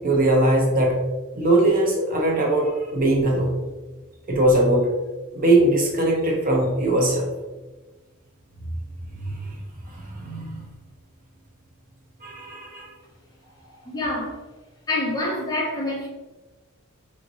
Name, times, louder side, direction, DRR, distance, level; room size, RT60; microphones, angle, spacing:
voice 1, 0.0-1.0 1.3-3.5 4.3-4.9 5.3-7.3 9.2-9.3 9.9-10.5 12.2-12.9, right 1 dB, 40° right, -1 dB, 0.7 m, -20 dB
voice 2, 13.9-14.4 14.9-16.1, left 1 dB, 15° left, -3 dB, 0.8 m, -26 dB
5.0 x 3.0 x 2.6 m, 1.2 s
head